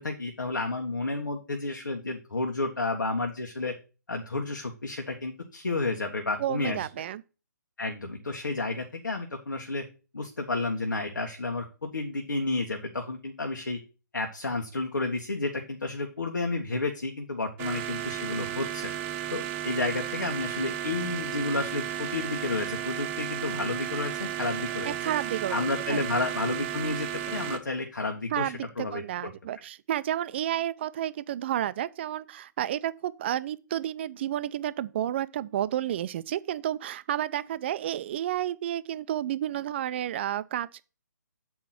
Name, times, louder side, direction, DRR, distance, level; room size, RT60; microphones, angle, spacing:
voice 1, 0.0-3.7 4.1-6.9 7.8-9.8 10.1-13.8 14.1-18.9 19.3-24.9 25.5-29.0, left 2 dB, 85° left, 1.6 m, -31 dB
voice 2, 6.4-7.2 24.8-26.0 28.3-40.8, right 11 dB, 35° right, 0.5 m, -31 dB
sound 1, 17.6-27.6, right 11 dB, 20° right, 0.9 m, -34 dB
8.6 x 4.7 x 5.9 m
figure-of-eight pair, 145°, 10 cm